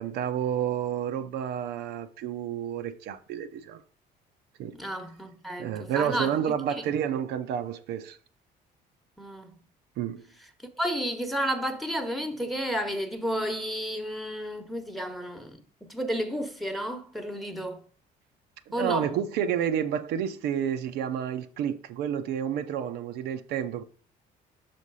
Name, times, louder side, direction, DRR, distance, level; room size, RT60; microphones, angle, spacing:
voice 1, 0.0-3.8 4.6-4.8 5.6-8.2 10.0-10.3 18.7-23.8, right 9 dB, 80° right, 0.6 m, -30 dB
voice 2, 4.7-6.9 9.2-9.6 10.7-17.8 18.7-19.1, equal, ahead, 1.0 m, -32 dB
6.4 x 4.2 x 4.7 m
cardioid pair, 110°, 17 cm